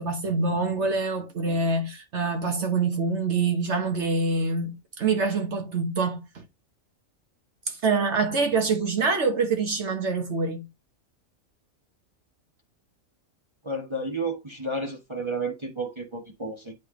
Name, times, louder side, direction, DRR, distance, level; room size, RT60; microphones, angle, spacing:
voice 1, 0.0-6.4 7.7-10.7, right 4 dB, 60° right, 1.3 m, -25 dB
voice 2, 13.6-16.7, right 2 dB, 25° right, 1.1 m, -31 dB
9.1 x 3.4 x 3.6 m
omnidirectional pair, 1.4 m